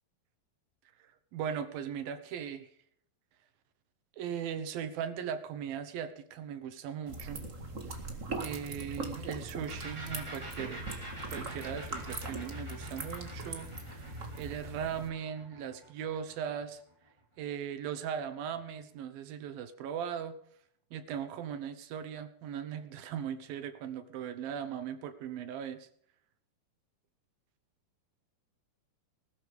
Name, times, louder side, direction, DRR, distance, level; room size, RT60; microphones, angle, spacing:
voice 1, 1.3-2.7 4.2-7.4 7.9-8.0 8.4-10.8 11.3-16.8 17.4-20.3 20.9-25.9, right 8 dB, 70° right, 11 dB, 2.6 m, -38 dB
sound 1, 7.1-15.1, right 2 dB, 50° right, 0.8 m, -41 dB
sound 2, 9.7-17.2, right 1 dB, 5° right, 3.4 m, -47 dB
19.5 x 13.0 x 3.5 m, 0.65 s
omnidirectional pair, 4.7 m